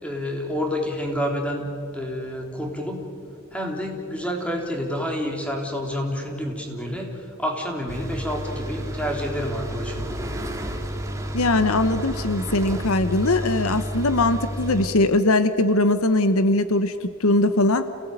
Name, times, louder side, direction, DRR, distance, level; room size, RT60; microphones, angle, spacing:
voice 1, 0.0-1.7 1.9-3.1 3.5-10.2, equal, 5° left, 1 dB, 3.4 m, -29 dB
sound 1, 7.9-14.9, equal, 15° right, 2.1 m, -31 dB
voice 2, 11.3-17.9, left 2 dB, 70° left, 11 dB, 1.0 m, -21 dB
28.0 x 17.5 x 9.1 m, 2.4 s
head